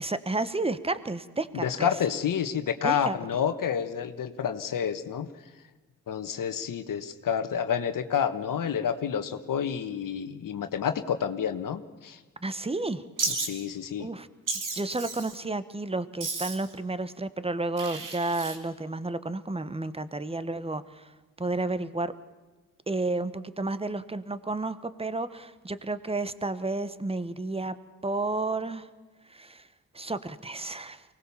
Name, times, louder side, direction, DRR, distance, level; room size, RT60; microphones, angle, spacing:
voice 1, 0.0-1.9 2.8-3.2 12.4-13.0 14.0-14.3 14.7-21.1 21.4-22.1 22.9-27.7 28.0-28.9 29.3-29.7 29.9-31.0, right 2 dB, 15° right, 13 dB, 1.3 m, -31 dB
voice 2, 1.6-5.3 6.1-12.2 13.3-14.1, left 8 dB, 65° left, 9 dB, 1.5 m, -29 dB
Wild animals, 13.2-13.5 14.5-15.4 16.2-16.7 17.8-18.6, right 4 dB, 60° right, 3.4 m, -32 dB
24.0 x 19.5 x 7.2 m, 1.3 s
supercardioid pair, 55°, 35 cm